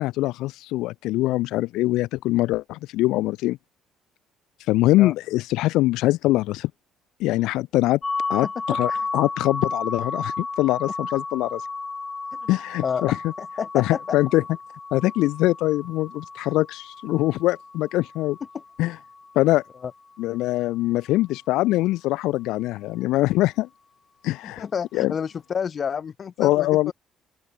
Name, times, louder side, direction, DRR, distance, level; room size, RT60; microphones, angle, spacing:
voice 1, 0.0-3.6 4.7-6.7 7.2-8.0 8.3-11.6 12.5-13.2 13.7-14.4 14.9-18.4 18.8-19.0 19.4-19.6 20.2-23.7 24.2-24.6 24.9-25.1 26.4-26.9, left 17 dB, 90° left, 1.8 m, -23 dB
sound 1, 8.0-19.8, left 4 dB, 20° left, 3.5 m, -33 dB
voice 2, 8.4-9.1 12.4-12.5 12.8-14.2 19.8-19.9 24.4-26.9, left 7 dB, 35° left, 4.6 m, -30 dB
open air
cardioid pair, 130°, 0 cm